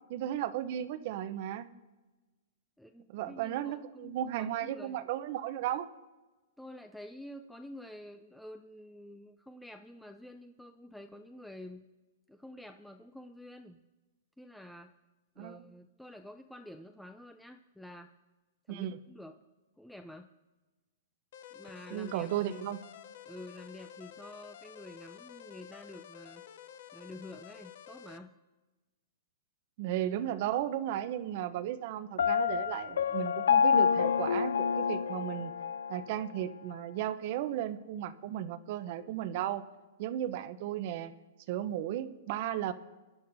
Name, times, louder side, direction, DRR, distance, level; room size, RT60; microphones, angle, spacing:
voice 1, 0.1-1.7 3.1-5.9 15.4-15.6 18.7-19.0 21.9-22.8 29.8-35.5 35.9-39.6 40.0-41.1 41.5-42.7, right 11 dB, 50° right, 12 dB, 0.8 m, -35 dB
voice 2, 2.8-5.0 6.6-11.8 12.3-13.8 14.4-14.9 15.4-18.1 18.7-19.4 19.8-20.3 21.5-22.7 23.3-26.4 26.9-28.3, left 1 dB, 5° left, 5 dB, 0.5 m, -49 dB
sound 1, 21.3-28.2, left 10 dB, 65° left, 0.7 m, -51 dB
Piano, 32.2-36.0, left 7 dB, 80° left, 0.3 m, -28 dB
23.0 x 11.0 x 2.7 m, 1.2 s
hypercardioid pair, 130°, 0 cm